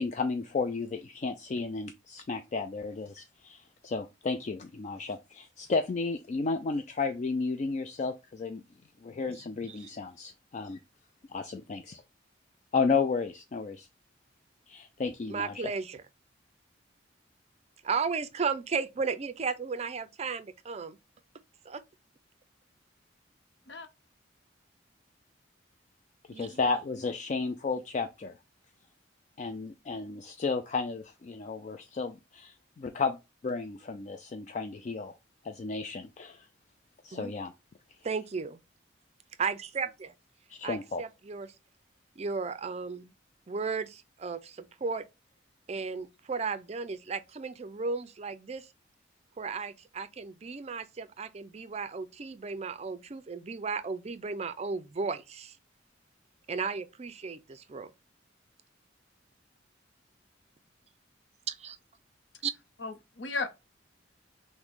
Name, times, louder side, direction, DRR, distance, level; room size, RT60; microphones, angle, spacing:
voice 1, 0.0-8.6 9.0-10.8 11.3-12.0 12.7-13.9 14.7-15.5 26.3-28.3 29.4-33.2 33.4-35.1 35.4-36.5 37.0-37.5 40.5-41.0, left 4 dB, 40° left, 0.3 m, -33 dB
voice 2, 15.3-16.0 17.8-21.0 21.7-21.8 26.3-26.6 37.1-37.3 38.0-38.6 39.4-40.1 40.6-41.5 42.2-43.1 43.5-45.0 45.7-48.7 49.4-55.6 56.5-57.9 61.5-61.8 62.4-62.5, right 5 dB, 35° right, 0.4 m, -35 dB
voice 3, 62.8-63.5, left 3 dB, 65° left, 0.7 m, -35 dB
5.9 x 2.1 x 3.6 m
head